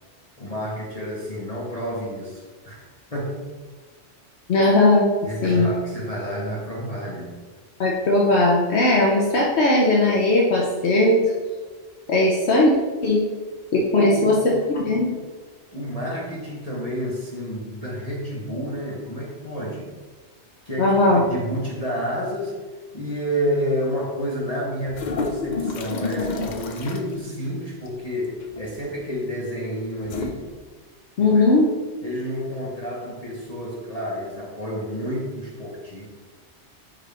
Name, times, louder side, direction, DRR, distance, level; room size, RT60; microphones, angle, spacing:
voice 1, 0.4-3.5 5.2-7.4 13.9-14.4 15.7-19.9 20.6-22.6 22.9-30.5 31.2-31.6 32.0-36.1, equal, 35° left, -5 dB, 1.0 m, -30 dB
voice 2, 4.5-5.1 5.4-5.7 7.8-11.2 12.1-12.7 13.0-13.2 13.7-15.1 20.8-21.2 31.2-31.7, left 2 dB, 70° left, -2 dB, 1.0 m, -18 dB
sound 1, 24.8-27.1 28.4-28.8 30.0-30.3, left 3 dB, 50° left, 0.6 m, -29 dB
5.7 x 4.9 x 3.3 m, 1.4 s
omnidirectional pair, 1.2 m